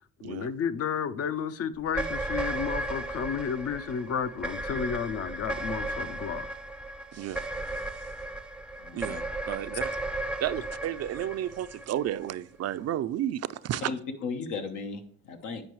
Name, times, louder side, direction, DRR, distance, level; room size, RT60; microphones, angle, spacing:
voice 1, 0.2-6.5, left 7 dB, 50° left, 14 dB, 0.6 m, -32 dB
sound 1, 1.8-12.3, right 1 dB, 5° right, 0.5 m, -35 dB
voice 2, 7.1-7.5 8.9-9.9 10.4-13.9, right 11 dB, 55° right, 14 dB, 0.4 m, -32 dB
voice 3, 8.8-9.2 13.8-15.6, left 4 dB, 80° left, 6 dB, 1.1 m, -36 dB
8.8 x 5.2 x 3.1 m, 0.64 s
cardioid pair, 90°, 30 cm